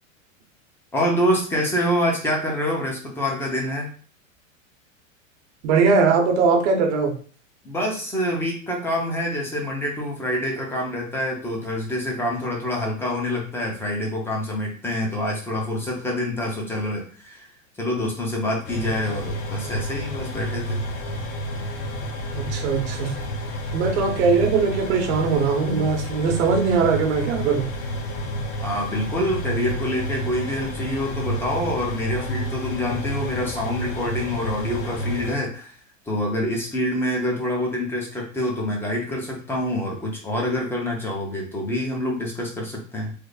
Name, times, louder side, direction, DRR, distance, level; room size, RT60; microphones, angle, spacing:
voice 1, 0.9-3.9 7.6-17.5 17.8-20.8 28.6-35.8 36.1-43.1, left 1 dB, 5° left, -1 dB, 0.7 m, -26 dB
voice 2, 5.6-7.1 22.3-23.1 23.7-27.7, right 5 dB, 55° right, 3 dB, 1.0 m, -20 dB
sound 1, 18.6-35.4, equal, 35° left, 0.8 m, -30 dB
3.4 x 2.0 x 3.9 m, 0.41 s
supercardioid pair, 145°, 39 cm